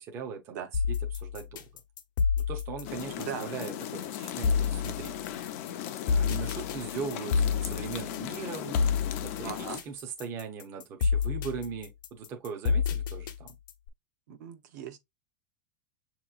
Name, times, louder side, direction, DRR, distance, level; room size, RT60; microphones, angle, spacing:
voice 1, 0.0-1.7 2.4-5.2 6.0-8.8 9.2-13.5, right 6 dB, 25° right, 0.7 m, -39 dB
sound 1, 0.7-13.9, left 6 dB, 75° left, 0.9 m, -29 dB
sound 2, 2.8-9.8, left 11 dB, 40° left, 0.5 m, -37 dB
voice 2, 9.4-9.8 14.3-15.0, right 8 dB, 60° right, 0.9 m, -39 dB
7.0 x 2.9 x 2.4 m
supercardioid pair, 175°, 11 cm